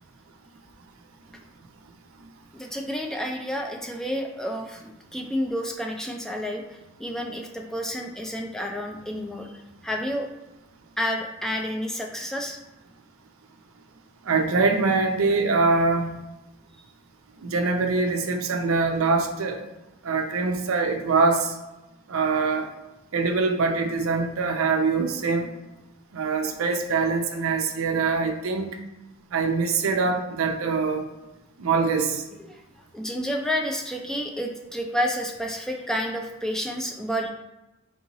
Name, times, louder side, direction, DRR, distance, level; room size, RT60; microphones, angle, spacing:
voice 1, 2.5-10.3 11.0-12.6 32.5-32.6 32.9-37.3, equal, 5° left, 1 dB, 0.3 m, -30 dB
voice 2, 14.3-16.2 17.4-19.6 20.0-21.5 22.1-22.7 23.1-25.5 26.1-28.7 29.3-31.1 31.6-32.2, right 4 dB, 90° right, 4 dB, 0.5 m, -23 dB
4.6 x 2.7 x 2.9 m, 1.0 s
head